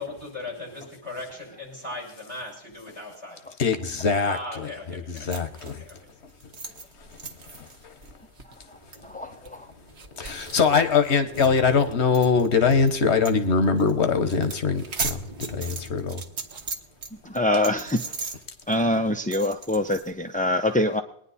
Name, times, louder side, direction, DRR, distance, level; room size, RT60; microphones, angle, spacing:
voice 1, 0.0-3.4 4.2-5.9, left 2 dB, 30° right, -3 dB, 6.2 m, -38 dB
voice 2, 3.6-5.8 10.2-15.2 15.5-16.2, left 5 dB, 85° left, 9 dB, 1.4 m, -22 dB
sound 1, 5.2-12.9 13.2-13.4 13.6-13.9 14.2-17.1 17.4-20.1, right 4 dB, 75° right, 1.4 m, -37 dB
Thunder, 8.3-18.3, equal, 30° left, 2.2 m, -46 dB
voice 3, 9.0-9.7 17.2-18.1 18.7-21.0, left 1 dB, 10° left, 6 dB, 0.4 m, -24 dB
22.0 x 10.0 x 4.2 m, 0.70 s
omnidirectional pair, 1.1 m